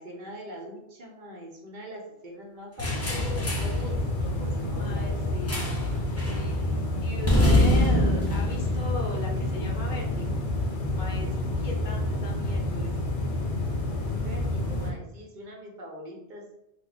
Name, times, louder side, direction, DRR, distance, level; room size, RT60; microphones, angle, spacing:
voice 1, 0.0-5.3 13.8-16.4, equal, 50° right, -1 dB, 0.9 m, -42 dB
sound 1, 2.8-14.9, left 1 dB, 75° left, 1.0 m, -29 dB
sound 2, 2.8-3.8 5.5-5.9 6.2-6.5 7.3-9.6, left 1 dB, 20° left, 0.5 m, -24 dB
voice 2, 4.7-5.8 6.3-10.4 11.0-12.9, left 2 dB, 50° left, -1 dB, 0.8 m, -38 dB
2.9 x 2.2 x 3.9 m, 0.86 s
omnidirectional pair, 1.1 m